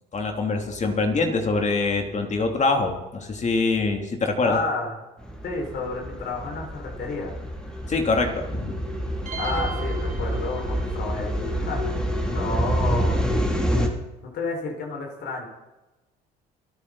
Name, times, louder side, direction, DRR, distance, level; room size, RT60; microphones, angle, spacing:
voice 1, 0.1-4.6 7.9-8.7, left 3 dB, 40° left, 3 dB, 3.2 m, -24 dB
voice 2, 4.4-4.9 5.4-7.4 9.4-13.2 14.2-15.5, left 3 dB, 60° left, 0 dB, 5.9 m, -31 dB
sound 1, 5.2-13.9, equal, 5° left, 3.0 m, -27 dB
sound 2, 9.3-11.1, right 5 dB, 40° right, 4.2 m, -36 dB
27.5 x 9.3 x 4.3 m, 1.1 s
supercardioid pair, 80°, 19 cm